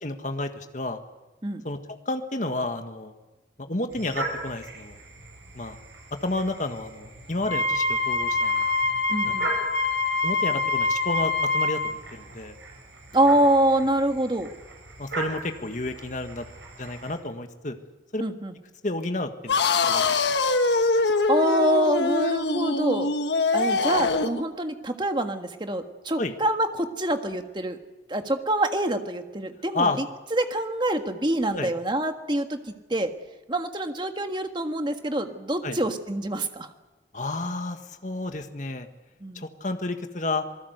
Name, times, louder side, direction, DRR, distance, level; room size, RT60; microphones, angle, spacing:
voice 1, 0.0-1.0 1.6-1.8 2.0-3.1 3.6-5.0 5.5-5.8 6.1-8.7 9.2-9.4 10.2-12.6 15.0-16.4 16.8-17.7 18.1-18.2 18.8-19.6 19.9-20.0 26.2-26.3 29.7-30.0 31.5-31.7 35.6-35.8 37.1-38.9 39.3-40.5, left 2 dB, 45° left, 7 dB, 1.6 m, -31 dB
sound 1, 3.9-17.2, right 2 dB, 80° right, 7.8 m, -40 dB
Wind instrument woodwind instrument, 7.4-11.9, left 3 dB, 90° left, 1.8 m, -25 dB
voice 2, 9.1-9.5 13.1-14.5 18.2-18.5 21.0-23.1 23.5-27.8 28.1-29.9 30.3-32.6 32.9-33.1 33.5-36.7 39.2-39.4, right 1 dB, 25° right, 6 dB, 1.6 m, -25 dB
sound 2, 19.5-24.4, left 3 dB, 70° left, 1.4 m, -23 dB
27.0 x 19.0 x 8.1 m, 1.2 s
head